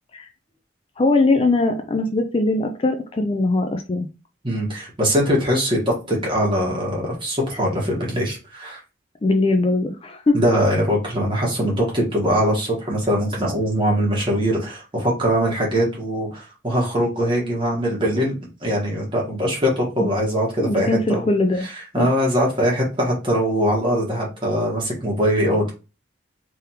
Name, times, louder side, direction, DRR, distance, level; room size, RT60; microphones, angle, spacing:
voice 1, 1.0-4.1 9.2-10.4 20.6-21.7 22.0-22.1, left 2 dB, 30° left, 6 dB, 0.3 m, -20 dB
voice 2, 4.4-8.8 10.3-18.3 18.6-21.3 21.6-25.7, equal, 25° right, -2 dB, 1.4 m, -22 dB
3.5 x 3.4 x 2.9 m, 0.31 s
head